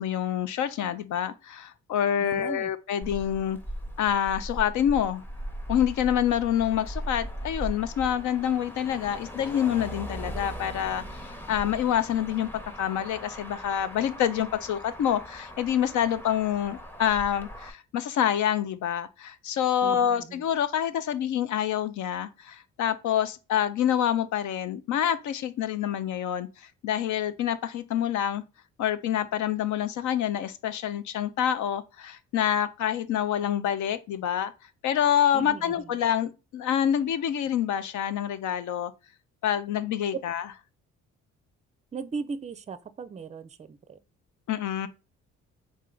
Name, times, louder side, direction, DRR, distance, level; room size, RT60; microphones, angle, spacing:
voice 1, 0.0-3.6 4.0-5.2 5.7-11.0 11.5-12.5 12.8-28.4 28.8-34.5 34.8-38.9 39.4-40.4 44.5-44.9, left 10 dB, 75° left, 0.6 m, -27 dB
voice 2, 2.2-2.7 19.8-20.4 35.3-35.9 40.1-40.2 41.9-44.0, right 5 dB, 25° right, 0.4 m, -37 dB
Motor vehicle (road), 3.0-17.7, equal, 5° left, 0.7 m, -39 dB
3.8 x 3.2 x 3.8 m
cardioid pair, 90°, 30 cm